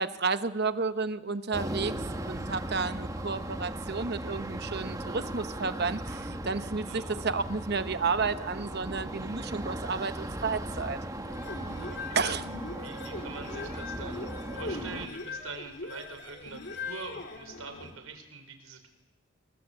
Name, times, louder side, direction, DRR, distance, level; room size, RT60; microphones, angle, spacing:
voice 1, 0.0-1.9 2.2-11.0 12.1-12.5, right 4 dB, 50° right, 11 dB, 1.0 m, -31 dB
sound 1, 1.5-15.1, right 1 dB, 15° right, 1.4 m, -37 dB
voice 2, 6.8-7.2 11.7-12.2 12.8-18.9, right 4 dB, 80° right, 7 dB, 4.8 m, -44 dB
sound 2, 11.2-18.0, left 3 dB, 50° left, 3.3 m, -41 dB
27.0 x 23.5 x 8.2 m, 1.0 s
head